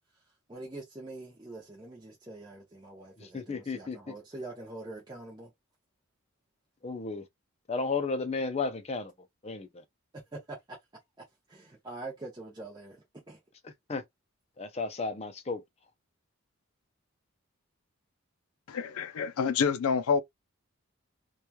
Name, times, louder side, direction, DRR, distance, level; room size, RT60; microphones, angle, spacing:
voice 1, 0.5-5.5 10.1-10.8 11.5-13.4, right 2 dB, 20° right, 0.6 m, -44 dB
voice 2, 3.3-4.0 6.8-7.2 7.7-9.1 9.4-9.7 13.9-14.0 14.6-15.6, left 4 dB, 30° left, 0.4 m, -33 dB
voice 3, 18.7-20.2, left 6 dB, 85° left, 0.4 m, -27 dB
2.9 x 2.3 x 2.2 m
head